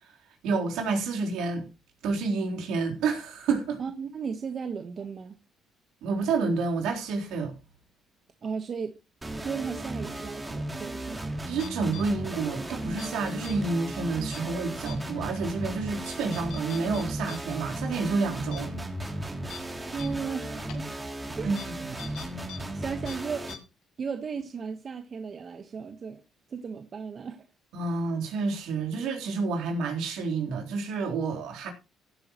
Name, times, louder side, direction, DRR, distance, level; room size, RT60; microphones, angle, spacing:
voice 1, 0.4-1.7 2.0-3.8 6.0-7.5 11.5-18.7 21.4-21.6 21.9-22.0 27.7-31.7, right 4 dB, 80° right, 3.5 m, -29 dB
voice 2, 3.8-5.3 8.4-8.9 9.4-11.2 19.4-19.5 19.9-20.9 21.4-21.7 22.7-23.5 24.0-26.2 26.5-27.5, right 6 dB, 45° right, 1.2 m, -35 dB
sound 1, 9.2-23.5, right 1 dB, 20° right, 2.8 m, -35 dB
sound 2, 11.6-12.1 12.8-13.1 13.4-13.6 14.3-14.5 14.9-15.0 15.4-15.5 16.1-17.4 17.7-17.8 18.2-18.3 18.5-18.6 19.0-19.1 19.5-19.6 20.0-20.1 20.7-20.8 21.6-21.7 22.0-22.6 22.8-23.2 23.5-23.6, left 9 dB, 80° left, 2.4 m, -43 dB
16.0 x 8.9 x 3.0 m
supercardioid pair, 70°, 0 cm